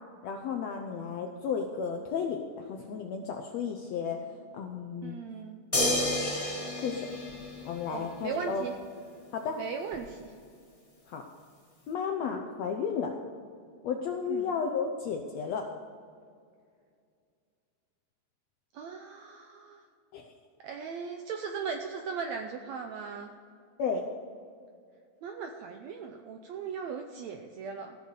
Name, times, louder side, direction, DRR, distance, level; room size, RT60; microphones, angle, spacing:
voice 1, 0.2-4.2 4.5-5.2 6.8-7.1 7.6-8.7 9.3-9.6 11.1-11.2 11.9-13.1 13.8-15.7 20.1-20.3 23.8-24.1, left 6 dB, 75° left, 4 dB, 1.5 m, -33 dB
voice 2, 5.0-5.6 7.9-8.7 9.6-10.3 14.3-14.5 18.7-19.8 20.6-23.3 25.2-28.0, right 6 dB, 80° right, 5 dB, 1.6 m, -38 dB
sound 1, 5.7-8.2 9.9-10.0, left 1 dB, 35° left, 0.5 m, -30 dB
15.0 x 6.5 x 6.7 m, 2.2 s
omnidirectional pair, 3.9 m